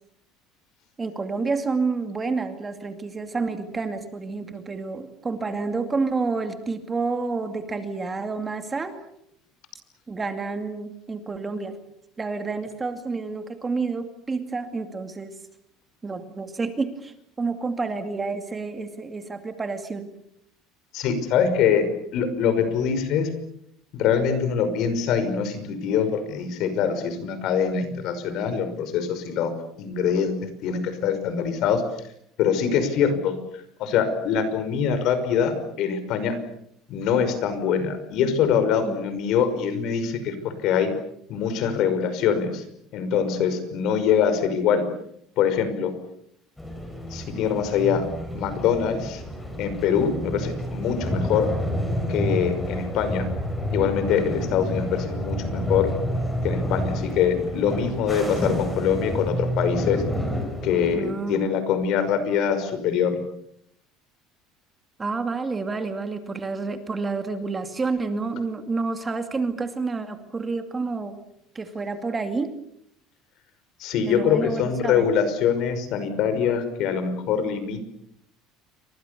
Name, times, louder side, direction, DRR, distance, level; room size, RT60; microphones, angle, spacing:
voice 1, 1.0-9.0 10.1-11.8 12.2-15.3 16.0-20.1 38.8-39.0 60.9-61.5 65.0-71.2 71.5-72.5 74.1-75.1, right 4 dB, 15° right, 7 dB, 2.4 m, -29 dB
voice 2, 20.9-21.9 22.1-23.3 23.9-29.5 29.8-30.4 30.6-31.8 32.4-33.4 33.8-36.4 36.9-40.9 41.3-42.6 42.9-44.8 45.4-45.9 47.1-48.0 48.3-49.2 49.6-51.5 52.1-53.3 53.7-55.9 56.4-60.0 60.6-63.2 73.8-77.9, left 7 dB, 55° left, 10 dB, 5.7 m, -24 dB
sound 1, 46.6-61.0, equal, 5° left, 6.6 m, -29 dB
29.0 x 25.5 x 7.0 m, 0.72 s
cardioid pair, 150°, 0 cm